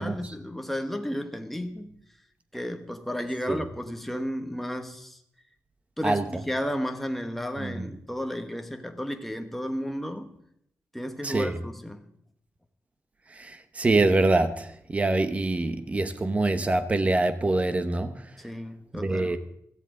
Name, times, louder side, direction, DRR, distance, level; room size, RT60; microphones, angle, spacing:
voice 1, 0.0-1.9 2.5-5.2 6.0-10.3 10.9-12.1 18.4-19.4, equal, 5° left, 1.1 m, -33 dB
voice 2, 7.6-7.9 11.2-11.6 13.4-18.1 18.9-19.4, right 2 dB, 25° right, 0.9 m, -25 dB
16.0 x 14.5 x 3.8 m
wide cardioid pair, 175°, 6 cm